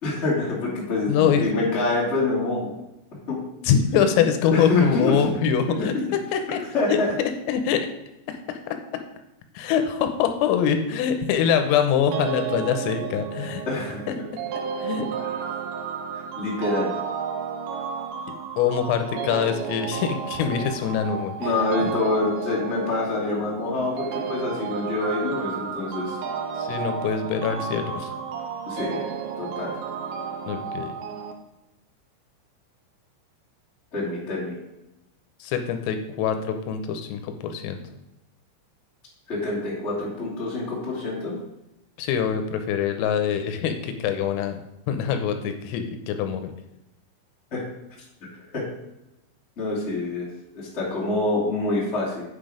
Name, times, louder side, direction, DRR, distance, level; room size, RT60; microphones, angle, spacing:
voice 1, 0.0-2.7 3.3-3.4 4.5-5.1 6.7-7.1 13.7-14.1 15.2-15.3 16.1-16.9 21.4-26.1 28.7-29.1 29.4-29.7 33.9-34.5 39.3-41.3 47.5-47.6 49.6-50.3 50.5-52.2, left 2 dB, 20° left, -6 dB, 2.2 m, -26 dB
voice 2, 1.1-1.5 3.6-5.9 6.3-6.6 6.9-7.0 7.5-7.9 8.3-8.6 9.5-13.6 14.1-14.2 14.8-15.1 18.6-22.0 26.6-28.2 30.5-31.0 35.4-37.8 42.0-44.6 44.9-46.5, left 8 dB, 85° left, 7 dB, 3.3 m, -24 dB
sound 1, 12.1-31.3, right 7 dB, 80° right, 3.5 m, -32 dB
8.7 x 6.1 x 5.0 m, 0.92 s
omnidirectional pair, 6.0 m